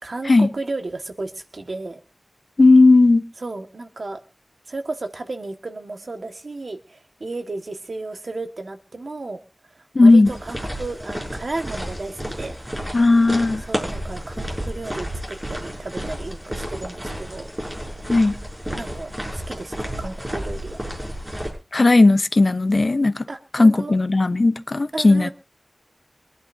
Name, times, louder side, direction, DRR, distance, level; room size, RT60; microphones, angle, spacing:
voice 1, 0.0-2.0 3.4-4.2 4.7-9.4 9.7-12.5 13.6-17.5 18.7-20.8 23.3-23.9 24.9-25.3, right 2 dB, 85° right, 1.6 m, -33 dB
voice 2, 2.6-3.2 9.9-10.3 12.9-13.6 18.1-18.3 21.7-23.3 23.5-25.3, left 3 dB, 65° left, 0.8 m, -15 dB
sound 1, 10.2-21.5, equal, 20° right, 6.8 m, -31 dB
25.0 x 10.5 x 2.7 m
wide cardioid pair, 50°, 0 cm